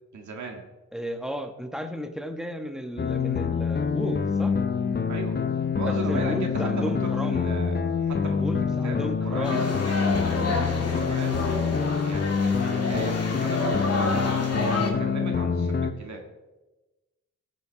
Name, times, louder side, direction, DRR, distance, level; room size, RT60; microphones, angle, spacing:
voice 1, 0.1-0.6 5.1-8.4 8.8-9.8 10.4-14.2 14.6-16.2, right 3 dB, 70° right, 2 dB, 1.9 m, -37 dB
voice 2, 0.9-4.6 5.8-7.4 8.2-9.7 10.4-10.6, equal, ahead, 6 dB, 1.4 m, -34 dB
sound 1, 3.0-15.9, left 6 dB, 35° left, 0.8 m, -26 dB
sound 2, 9.4-14.9, left 2 dB, 55° left, 2.5 m, -29 dB
14.0 x 6.9 x 4.0 m, 1.1 s
cardioid pair, 65°, 30 cm